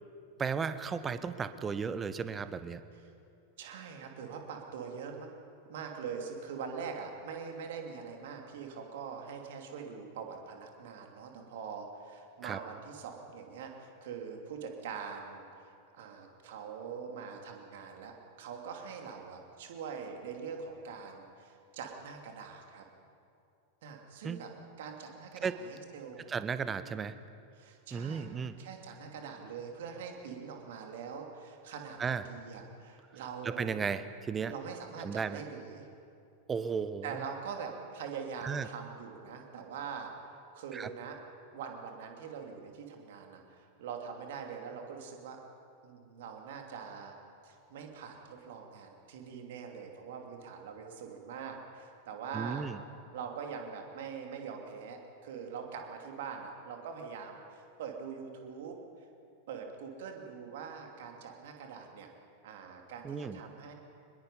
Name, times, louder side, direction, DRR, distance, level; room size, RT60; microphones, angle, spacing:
voice 1, 0.4-2.8 12.4-12.6 24.2-24.4 25.4-25.6 26.3-27.1 27.9-28.6 32.0-32.2 33.4-34.5 35.0-35.4 36.5-37.2 38.4-38.7 40.7-40.9 52.3-52.8 63.0-63.4, right 6 dB, 20° right, 13 dB, 0.9 m, -34 dB
voice 2, 3.6-5.3 5.7-22.8 23.8-24.5 24.8-26.3 26.9-27.1 27.5-28.3 28.6-33.7 34.5-35.8 37.0-40.1 40.5-41.2 41.5-45.4 45.8-47.2 47.4-52.7 53.1-58.8 59.5-62.1 62.4-63.7, right 6 dB, 55° right, 3 dB, 2.8 m, -43 dB
24.0 x 21.0 x 5.5 m, 2.5 s
figure-of-eight pair, 90°, 0 cm